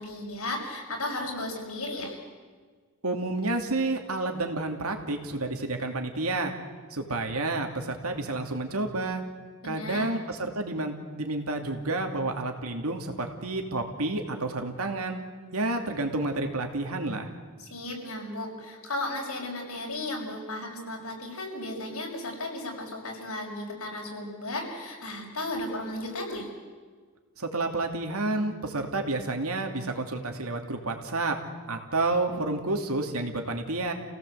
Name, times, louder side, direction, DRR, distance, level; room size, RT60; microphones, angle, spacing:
voice 1, 0.0-2.2 9.6-10.1 17.6-26.5, left 1 dB, 90° left, 0 dB, 6.2 m, -35 dB
voice 2, 3.0-6.5 6.9-9.2 9.6-15.2 15.5-17.3 27.4-31.4 31.7-33.9, right 2 dB, 85° right, 4 dB, 2.7 m, -30 dB
28.5 x 17.0 x 8.1 m, 1.5 s
head